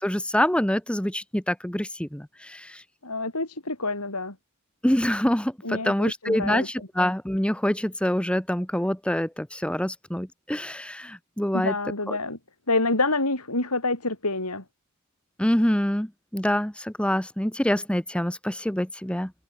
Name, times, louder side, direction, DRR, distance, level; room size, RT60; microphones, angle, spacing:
voice 1, 0.0-2.8 4.8-11.7 12.1-12.2 15.4-16.1 16.3-19.3, equal, 5° left, 1.0 m, -26 dB
voice 2, 3.0-4.4 5.6-6.9 11.5-12.4 12.7-14.6, left 2 dB, 90° left, 7.4 m, -27 dB
open air
head